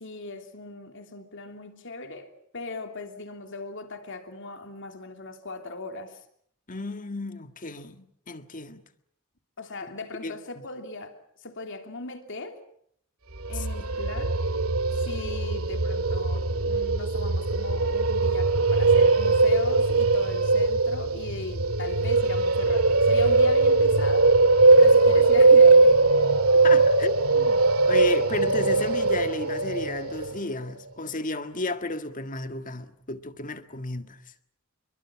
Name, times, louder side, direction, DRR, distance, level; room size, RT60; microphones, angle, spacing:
voice 1, 0.0-6.2 9.6-12.6 13.5-14.4 14.9-24.4 24.8-26.1, left 3 dB, 60° left, 3.1 m, -39 dB
voice 2, 6.7-8.8 10.2-10.7 13.5-13.7 25.1-25.3 26.6-34.2, left 2 dB, 40° left, 1.7 m, -33 dB
sound 1, 13.4-30.4, right 3 dB, 80° right, 2.0 m, -20 dB
27.0 x 23.0 x 7.2 m
head